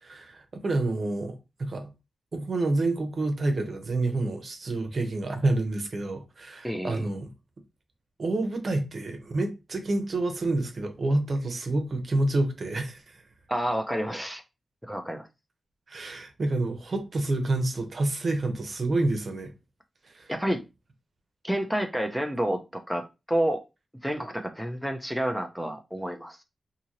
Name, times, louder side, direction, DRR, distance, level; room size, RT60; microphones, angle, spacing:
voice 1, 0.0-1.9 2.3-7.3 8.2-13.2 15.9-19.5 20.0-20.3, right 2 dB, 55° right, 0.7 m, -28 dB
voice 2, 6.6-7.1 13.5-14.4 14.9-15.3 20.3-20.6 21.4-23.6 24.0-26.4, equal, ahead, 0.5 m, -29 dB
2.7 x 2.6 x 2.9 m
cardioid pair, 70°, 0 cm